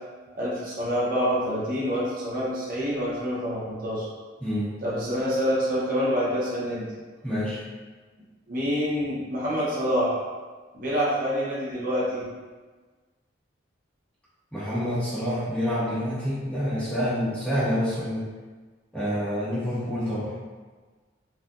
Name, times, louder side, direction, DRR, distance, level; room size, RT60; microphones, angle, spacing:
voice 1, 0.3-4.1 4.8-6.9 8.5-10.2 10.7-12.3, equal, 45° right, -8 dB, 1.0 m, -26 dB
voice 2, 7.2-7.6 14.5-18.3 18.9-20.3, equal, 5° left, -11 dB, 1.2 m, -27 dB
4.8 x 2.5 x 2.5 m, 1.4 s
head